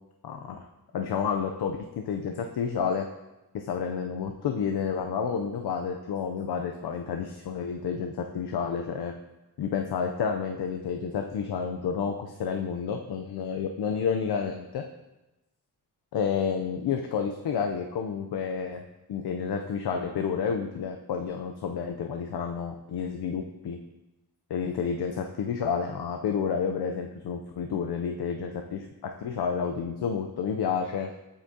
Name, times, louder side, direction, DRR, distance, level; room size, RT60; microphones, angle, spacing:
voice 1, 0.2-0.7 0.9-3.1 3.5-9.1 9.6-14.8 16.1-18.8 19.1-23.8 24.5-31.1, left 6 dB, 80° left, 4 dB, 0.6 m, -30 dB
8.1 x 5.9 x 2.7 m, 1.0 s
wide cardioid pair, 100°, 39 cm